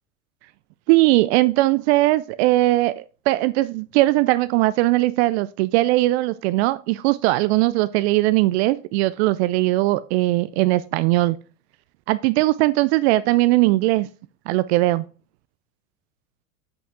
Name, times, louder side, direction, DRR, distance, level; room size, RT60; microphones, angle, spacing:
voice 1, 0.9-11.4 12.1-14.1 14.5-15.1, right 18 dB, 50° right, 0.5 m, -19 dB
8.3 x 5.3 x 3.6 m
hypercardioid pair, 90°, 42 cm